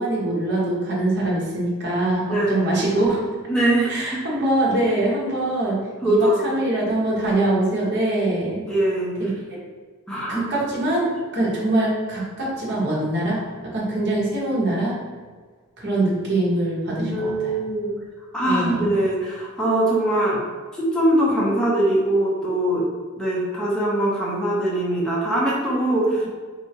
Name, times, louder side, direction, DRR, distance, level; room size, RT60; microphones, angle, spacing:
voice 1, 0.0-3.2 3.9-8.6 9.2-9.3 10.3-15.0 15.8-17.6 18.5-18.9, right 1 dB, 55° right, -5 dB, 1.1 m, -23 dB
voice 2, 2.3-2.7 3.5-4.2 6.0-6.5 8.7-9.2 10.1-10.5 17.0-17.9 18.3-20.4 20.7-22.9 23.2-26.3, right 1 dB, 5° left, -6 dB, 0.6 m, -22 dB
3.3 x 2.7 x 2.8 m, 1.5 s
head